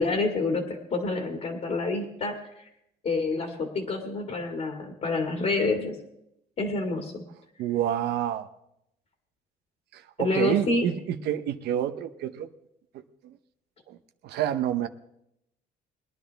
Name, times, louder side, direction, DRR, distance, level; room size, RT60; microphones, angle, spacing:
voice 1, 0.0-2.6 3.0-6.0 6.6-7.2 10.2-10.9, left 3 dB, 45° left, 3 dB, 2.1 m, -28 dB
voice 2, 7.6-8.5 9.9-12.5 12.9-13.4 13.9-14.0 14.2-14.9, right 10 dB, 75° right, 9 dB, 0.8 m, -28 dB
21.0 x 10.5 x 3.4 m, 0.80 s
cardioid pair, 110°, 17 cm